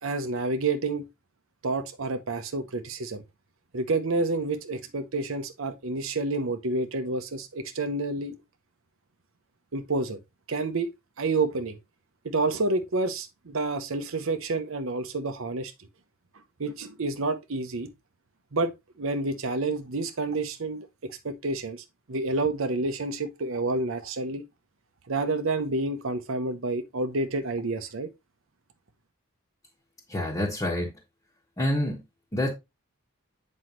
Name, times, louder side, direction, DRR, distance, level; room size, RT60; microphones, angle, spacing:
voice 1, 0.0-1.1 1.6-3.2 3.7-8.4 9.7-10.2 10.5-10.9 11.2-11.8 12.2-15.7 16.6-17.9 18.5-18.7 19.0-24.4 25.1-28.1, right 3 dB, 65° right, 0.8 m, -29 dB
voice 2, 30.1-30.9 31.6-32.0 32.3-32.5, left 1 dB, 15° left, 1.4 m, -27 dB
7.8 x 5.4 x 3.0 m
head